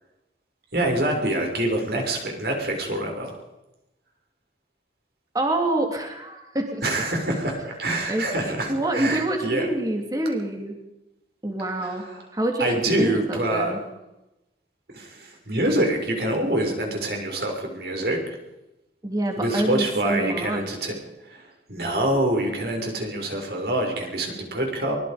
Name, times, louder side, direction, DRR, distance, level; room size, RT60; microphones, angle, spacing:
voice 1, 0.7-3.4 6.8-9.7 11.8-12.2 12.6-13.8 14.9-18.4 19.4-21.0 21.3-24.9, right 1 dB, 65° right, 2 dB, 6.2 m, -26 dB
voice 2, 5.3-6.8 8.1-10.8 11.4-13.8 19.0-20.9, right 1 dB, 20° right, 2 dB, 3.1 m, -27 dB
23.5 x 21.5 x 5.3 m, 0.94 s
head